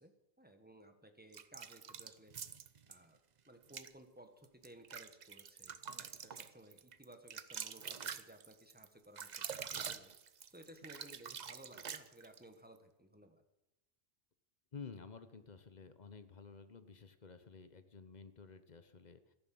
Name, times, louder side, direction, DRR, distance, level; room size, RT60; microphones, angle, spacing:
voice 1, 0.0-2.3 2.9-3.2 3.4-10.1 10.5-13.4, right 1 dB, 10° right, 6 dB, 1.4 m, -58 dB
sound 1, 1.3-3.0 3.6-3.9 4.4-12.4, right 7 dB, 45° right, 0.7 m, -46 dB
voice 2, 14.7-19.3, left 5 dB, 40° left, 11 dB, 1.0 m, -52 dB
14.0 x 11.0 x 7.8 m, 0.93 s
omnidirectional pair, 1.1 m